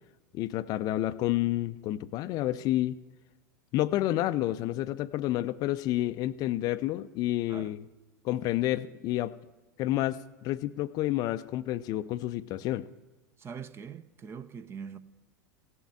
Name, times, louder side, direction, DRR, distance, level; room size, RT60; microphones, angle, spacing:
voice 1, 0.3-3.0 3.7-7.8 8.2-9.3 9.8-12.9, left 14 dB, 35° left, 0.5 m, -29 dB
voice 2, 13.4-15.0, right 6 dB, 25° right, 0.7 m, -42 dB
16.0 x 7.3 x 9.6 m
figure-of-eight pair, 85°, 10 cm